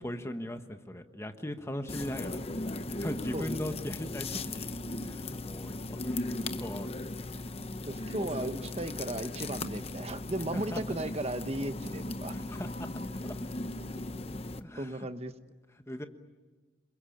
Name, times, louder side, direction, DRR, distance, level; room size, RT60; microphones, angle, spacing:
voice 1, 0.0-2.5 2.9-4.7 5.0-6.9 8.2-8.3 10.5-10.8 11.2-11.3 12.3-12.9 13.2-13.4 14.5-15.1 15.9-16.1, left 1 dB, 15° left, 7 dB, 1.3 m, -39 dB
sound 1, 1.9-14.6, left 2 dB, 35° left, 0.9 m, -37 dB
voice 2, 7.9-12.3 14.8-15.3, right 1 dB, 35° right, 10 dB, 1.1 m, -35 dB
28.5 x 22.0 x 8.7 m, 1.3 s
head